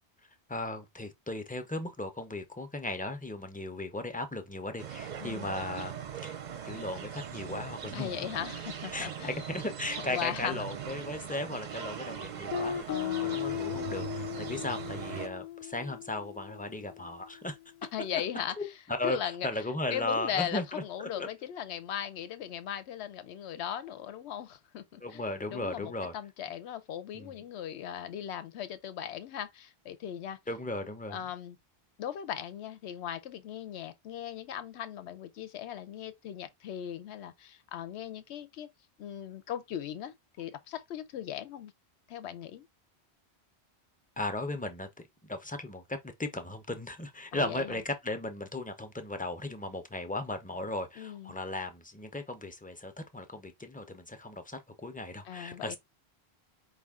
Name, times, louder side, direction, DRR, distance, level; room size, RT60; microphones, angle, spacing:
voice 1, 0.5-6.4 6.6-8.2 8.9-17.6 18.1-18.2 18.5-21.3 25.0-26.1 27.1-27.3 30.5-31.3 44.2-44.9 45.2-55.8, left 2 dB, 10° left, 0.5 m, -36 dB
sound 1, 4.8-15.3, right 8 dB, 50° right, 0.6 m, -40 dB
voice 2, 5.2-5.6 7.9-9.4 10.1-10.7 12.9-13.4 17.9-18.7 19.0-19.5 19.9-25.2 25.5-30.4 31.1-31.6 32.0-38.7 39.0-41.7 42.1-42.7 47.3-47.8 51.0-51.4 55.2-55.8, left 10 dB, 85° left, 0.9 m, -38 dB
Guitar, 12.5-17.2, left 11 dB, 60° left, 0.7 m, -37 dB
4.8 x 2.5 x 3.5 m
omnidirectional pair, 1.1 m